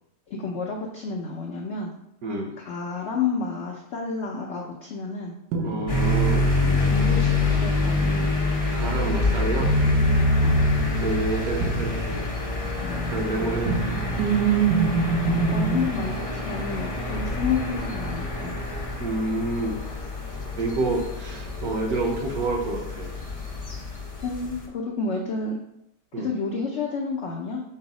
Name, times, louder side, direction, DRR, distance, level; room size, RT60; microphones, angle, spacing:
voice 1, 0.3-1.9 2.6-5.4 6.6-8.4 10.4-10.6 12.8-13.6 13.9-14.3 15.3-18.6 24.2-25.6 26.2-27.6, left 4 dB, 90° left, 0 dB, 0.6 m, -30 dB
voice 2, 2.2-2.5 5.6-6.4 8.7-9.7 11.0-12.2 13.0-14.0 19.0-19.7 20.6-23.1 26.1-26.3, right 2 dB, 65° right, 0 dB, 1.2 m, -28 dB
sound 1, 5.5-6.2 9.6-12.7 13.2-15.8, right 2 dB, 90° right, 1.3 m, -23 dB
sound 2, 5.9-24.7, left 2 dB, 35° left, 0.6 m, -27 dB
5.4 x 2.0 x 4.8 m, 0.79 s
omnidirectional pair, 1.8 m